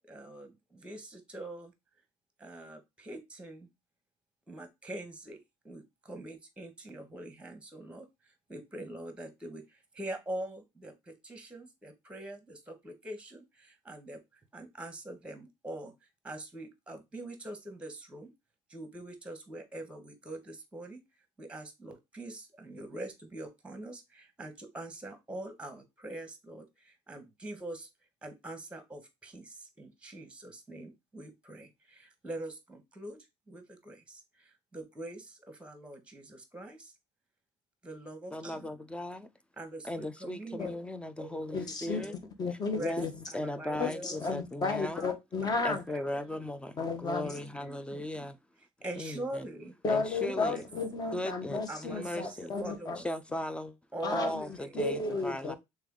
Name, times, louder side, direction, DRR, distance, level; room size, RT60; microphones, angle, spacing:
voice 1, 0.1-1.7 2.4-3.7 4.5-5.4 5.6-8.1 8.5-14.2 14.5-15.9 16.2-18.3 18.7-21.0 21.4-27.9 28.2-33.2 33.5-36.9 37.8-38.7 39.6-40.7 41.2-42.2 42.7-43.0 43.3-44.2 44.7-45.1 45.4-45.6 45.9-46.3 47.2-48.0 48.8-49.7 50.3-50.6 51.7-53.1 53.9-54.8, right 1 dB, 10° right, 1.0 m, -44 dB
voice 2, 38.3-39.3 39.8-42.1 42.8-43.1 43.3-45.0 45.6-48.4 49.0-49.5 49.9-50.6 51.1-52.5 53.0-53.8 54.1-55.5, left 1 dB, 10° left, 0.4 m, -37 dB
voice 3, 41.5-42.0 42.4-43.1 43.7-45.8 46.8-47.3 49.8-53.0 54.0-54.4 54.7-55.6, left 3 dB, 35° left, 1.0 m, -33 dB
3.4 x 3.2 x 3.6 m
cardioid pair, 110°, 11 cm